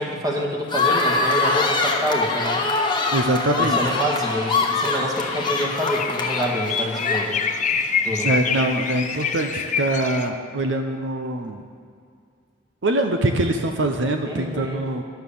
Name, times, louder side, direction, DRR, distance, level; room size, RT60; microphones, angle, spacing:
voice 1, 0.0-2.6 3.6-7.4 8.0-8.3 14.2-14.8, equal, 20° right, -1 dB, 1.7 m, -27 dB
sound 1, 0.7-7.6, left 3 dB, 25° left, 1.1 m, -23 dB
voice 2, 3.1-4.0 8.2-11.6 12.8-15.0, right 1 dB, 70° right, 5 dB, 0.7 m, -23 dB
sound 2, 5.1-10.3, left 6 dB, 40° left, 0.6 m, -26 dB
11.5 x 8.0 x 7.0 m, 2.2 s
head